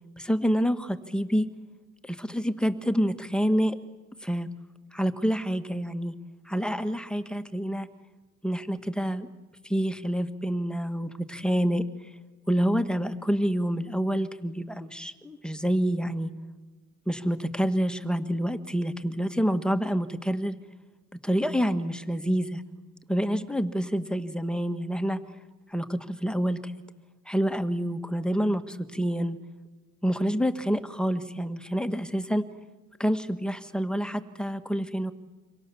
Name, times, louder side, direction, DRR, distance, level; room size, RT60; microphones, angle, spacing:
voice 1, 0.2-1.5 2.0-3.8 4.2-4.5 4.9-6.1 6.4-7.9 8.4-9.3 9.6-12.1 12.5-16.3 17.1-20.6 21.2-22.6 23.1-25.2 25.7-26.7 27.2-29.4 30.0-32.5 33.0-35.1, equal, 5° left, 9 dB, 1.6 m, -27 dB
26.5 x 25.0 x 7.1 m, 1.2 s
cardioid pair, 90°, 30 cm